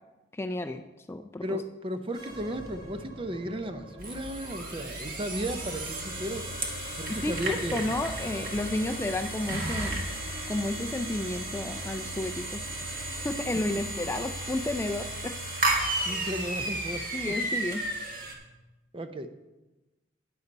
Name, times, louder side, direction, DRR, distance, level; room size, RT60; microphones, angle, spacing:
voice 1, 0.3-0.8 1.1-1.6 7.1-10.1 10.5-12.6 12.9-15.4 15.8-16.0 17.1-17.8, left 1 dB, 15° left, 7 dB, 0.3 m, -32 dB
voice 2, 1.4-6.5 7.0-7.9 16.0-17.4 18.9-19.5, equal, 30° right, 9 dB, 0.6 m, -35 dB
sound 1, 2.0-13.5, equal, 80° right, 3.4 m, -47 dB
sound 2, 4.0-18.3, right 1 dB, 50° right, 1.6 m, -33 dB
10.5 x 9.5 x 4.1 m, 1.1 s
head